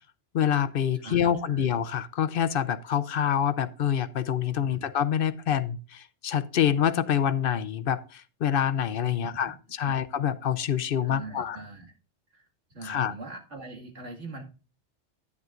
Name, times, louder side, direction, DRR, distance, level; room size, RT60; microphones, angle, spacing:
voice 1, 0.3-11.6 12.8-13.1, left 9 dB, 60° left, 0.8 m, -26 dB
voice 2, 0.9-1.7 4.7-4.9 9.2-9.6 9.8-10.0 11.0-11.9 12.3-12.5 12.7-14.4, right 3 dB, 85° right, 2.4 m, -42 dB
10.5 x 9.6 x 2.5 m
omnidirectional pair, 1.2 m